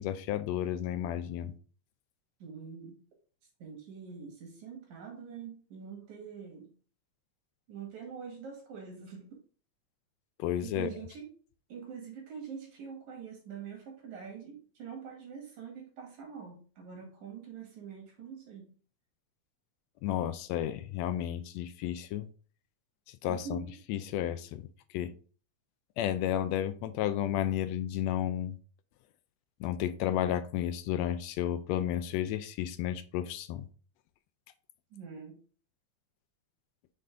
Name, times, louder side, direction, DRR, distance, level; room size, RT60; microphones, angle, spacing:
voice 1, 0.0-1.5 10.4-10.9 20.0-22.3 23.1-24.7 24.9-25.1 26.0-28.6 29.6-33.7, left 11 dB, 80° left, 12 dB, 1.6 m, -32 dB
voice 2, 2.4-3.0 3.6-6.7 7.7-9.4 10.6-11.3 11.7-18.7 23.2-23.8 34.9-35.4, right 7 dB, 80° right, 0 dB, 3.5 m, -44 dB
7.7 x 3.9 x 3.7 m, 0.40 s
omnidirectional pair, 3.3 m